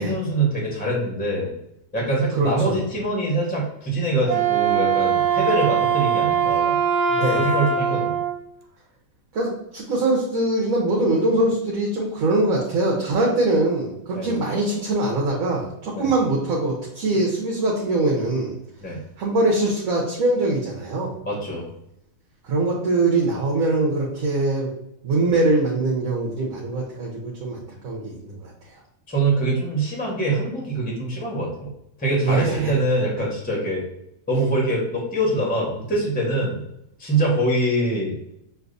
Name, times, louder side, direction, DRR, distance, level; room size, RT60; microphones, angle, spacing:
voice 1, 0.0-1.5 1.9-6.8 7.3-8.2 14.1-14.3 16.0-16.1 18.8-19.0 21.2-21.7 29.1-31.7 32.0-33.9 34.3-36.6 37.0-38.2, right 2 dB, 5° left, -3 dB, 0.7 m, -24 dB
voice 2, 2.3-2.8 7.1-7.6 9.3-18.6 19.2-21.1 22.4-24.7 25.0-28.5 32.2-32.7, right 2 dB, 60° right, -3 dB, 1.2 m, -22 dB
Wind instrument woodwind instrument, 4.2-8.4, right 7 dB, 85° right, 1.2 m, -21 dB
6.4 x 2.6 x 2.6 m, 0.81 s
omnidirectional pair, 1.8 m